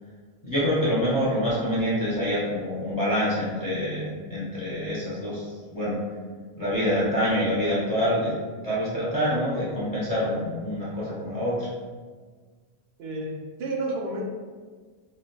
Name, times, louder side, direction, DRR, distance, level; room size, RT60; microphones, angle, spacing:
voice 1, 0.4-6.0 6.6-8.3 8.6-11.7, equal, 20° left, -9 dB, 0.7 m, -26 dB
voice 2, 13.0-14.2, right 2 dB, 80° right, -2 dB, 0.9 m, -31 dB
2.6 x 2.3 x 3.9 m, 1.5 s
omnidirectional pair, 1.0 m